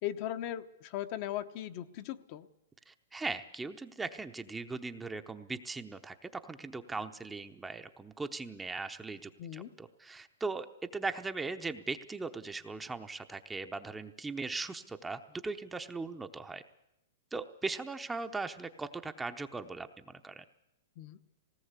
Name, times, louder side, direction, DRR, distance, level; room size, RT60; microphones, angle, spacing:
voice 1, 0.0-2.5 9.4-9.7 21.0-21.2, left 12 dB, 40° left, 9 dB, 0.9 m, -38 dB
voice 2, 2.9-16.6 17.3-20.4, right 3 dB, 10° right, 7 dB, 0.8 m, -39 dB
19.0 x 18.0 x 8.2 m, 0.85 s
hypercardioid pair, 150°, 0 cm